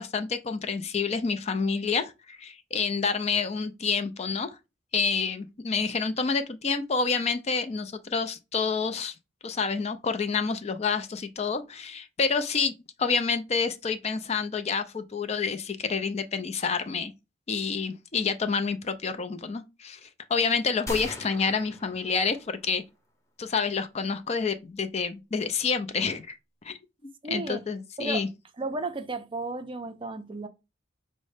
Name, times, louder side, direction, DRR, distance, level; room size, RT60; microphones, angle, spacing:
voice 1, 0.0-4.5 4.9-9.1 9.4-12.7 13.0-17.1 17.5-22.4 22.6-22.8 23.4-26.4 26.6-26.8 27.3-28.3, left 5 dB, 35° left, 0.4 m, -28 dB
sound 1, 20.9-22.7, left 1 dB, 15° left, 0.8 m, -40 dB
voice 2, 27.2-27.6 28.0-28.2 28.6-30.5, right 3 dB, 25° right, 0.5 m, -33 dB
5.2 x 2.1 x 4.8 m
head